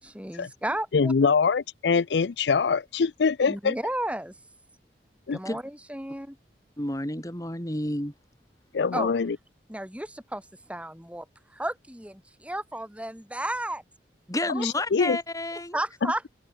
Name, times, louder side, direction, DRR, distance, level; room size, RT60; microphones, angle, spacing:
voice 1, 0.0-1.3 3.5-4.3 5.3-6.4 8.9-9.1 9.7-13.8 14.5-14.7 15.7-16.3, right 1 dB, 5° right, 5.9 m, -33 dB
voice 2, 0.9-3.7 5.3-5.4 8.7-9.4 14.6-15.2, left 5 dB, 75° left, 0.5 m, -23 dB
voice 3, 6.8-8.1 14.3-15.8, left 1 dB, 20° left, 4.4 m, -30 dB
open air
head